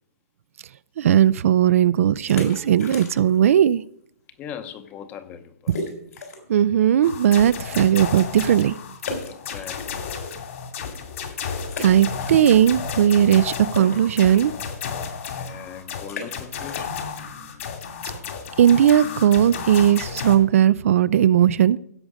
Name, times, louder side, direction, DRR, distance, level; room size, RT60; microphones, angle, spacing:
voice 1, 1.0-3.8 6.5-8.8 11.8-14.5 18.6-21.8, right 10 dB, 55° right, 0.4 m, -17 dB
sound 1, 2.3-3.5 3.8-3.9 4.5-4.6 4.9-5.0 5.7-6.6 7.1-7.2 9.0-10.3 10.8-10.9 11.6-12.8 13.1-18.6, left 2 dB, 80° left, 3.7 m, -37 dB
voice 2, 4.4-5.7 9.3-10.1 15.3-17.0, left 8 dB, 20° left, 0.7 m, -39 dB
sound 2, 7.0-20.4, left 6 dB, 55° left, 2.2 m, -33 dB
15.5 x 6.2 x 5.0 m
hypercardioid pair, 160°, 9 cm